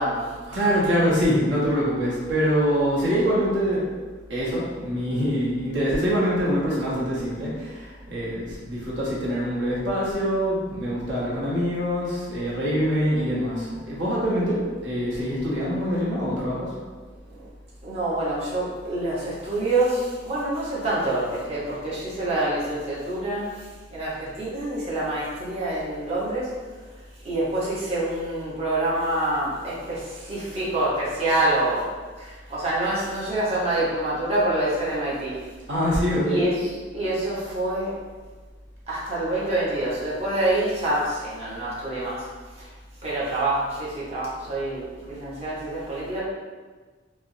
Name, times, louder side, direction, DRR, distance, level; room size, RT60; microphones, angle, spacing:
voice 1, 0.0-0.7 17.3-17.5 17.8-26.6 26.9-31.9 32.2-35.4 36.2-37.9 38.9-42.3 42.6-42.7 43.0-46.2, right 1 dB, 35° right, -8 dB, 0.8 m, -26 dB
voice 2, 0.5-3.8 4.3-7.5 8.1-16.7 35.7-36.4, equal, 75° right, -6 dB, 0.9 m, -24 dB
4.3 x 2.0 x 2.6 m, 1.4 s
head